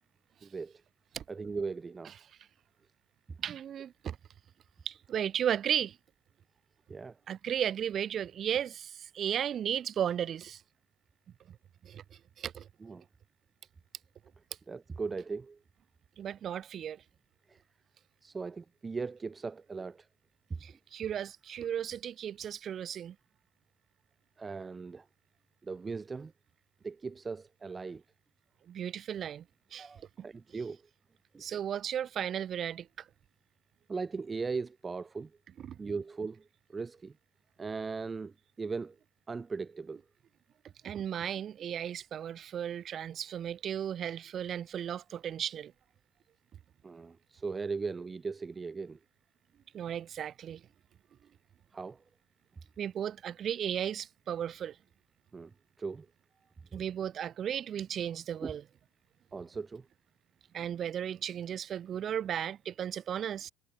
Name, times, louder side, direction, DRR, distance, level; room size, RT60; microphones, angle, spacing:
voice 1, 0.4-0.8 1.3-2.1 6.9-7.2 12.8-13.0 14.7-15.6 17.5-17.6 18.2-20.1 24.4-25.1 25.6-26.3 26.8-28.0 29.8-30.8 31.3-31.6 33.9-35.3 35.8-36.4 36.7-37.1 37.6-38.9 39.3-40.0 46.8-49.0 51.7-52.0 55.3-55.5 55.8-56.1 56.7-56.8 58.4-58.5 59.3-59.9, right 4 dB, 20° right, 1.5 m, -38 dB
voice 2, 3.4-4.2 4.9-6.0 7.3-10.6 11.5-11.6 11.8-12.7 16.2-17.0 20.6-23.2 28.7-29.5 29.7-29.9 31.4-33.1 35.6-35.8 40.8-45.7 49.7-50.6 52.8-54.8 56.7-58.6 60.5-63.5, right 9 dB, 40° right, 5.5 m, -35 dB
cardioid pair, 125°, 0 cm